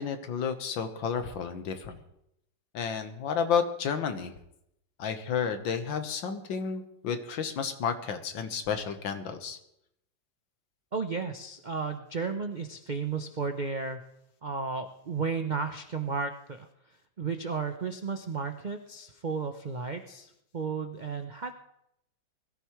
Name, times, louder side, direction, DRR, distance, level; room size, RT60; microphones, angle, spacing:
voice 1, 0.0-2.0 2.7-4.3 5.0-9.6, left 6 dB, 85° left, 8 dB, 1.9 m, -31 dB
voice 2, 10.9-14.0 14.4-16.7 17.2-21.5, right 5 dB, 70° right, 6 dB, 0.4 m, -33 dB
21.0 x 13.5 x 3.1 m, 0.79 s
omnidirectional pair, 2.1 m